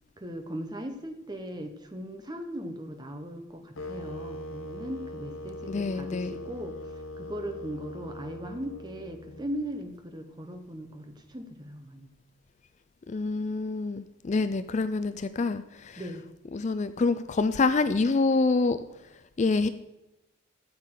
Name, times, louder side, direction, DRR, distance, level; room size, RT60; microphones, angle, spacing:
voice 1, 0.2-12.1 16.0-16.3, equal, 20° right, 6 dB, 0.9 m, -38 dB
sound 1, 3.8-9.8, left 1 dB, 75° left, 0.8 m, -41 dB
voice 2, 5.7-6.4 13.1-16.0 16.5-18.8 19.4-19.7, left 3 dB, 35° left, 11 dB, 0.3 m, -26 dB
13.0 x 8.2 x 3.8 m, 0.97 s
head